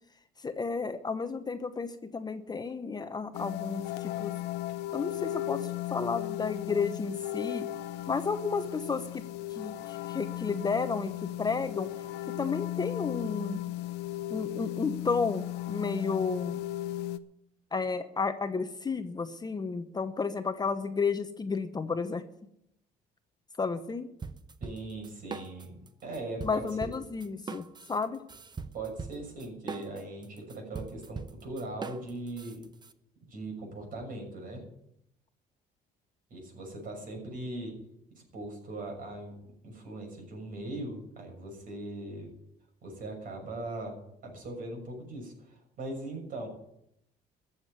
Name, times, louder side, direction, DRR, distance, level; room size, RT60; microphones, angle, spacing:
voice 1, 0.4-4.3 4.9-7.7 8.1-9.2 9.5-11.1 11.4-11.9 12.4-13.6 14.3-16.6 17.7-22.2 23.6-24.1 26.4-28.2, left 4 dB, 25° left, 9 dB, 0.9 m, -32 dB
sound 1, 3.3-17.2, left 15 dB, 85° left, 0.8 m, -36 dB
sound 2, 24.2-25.9 26.1-32.9, right 4 dB, 25° right, 0.9 m, -41 dB
voice 2, 24.6-26.9 28.7-32.6 33.2-34.6 36.3-37.8 38.1-39.3 39.6-42.3 42.8-44.0 44.2-46.5, right 2 dB, 55° right, 2 dB, 6.6 m, -40 dB
14.0 x 7.4 x 9.4 m, 0.78 s
cardioid pair, 110°, 17 cm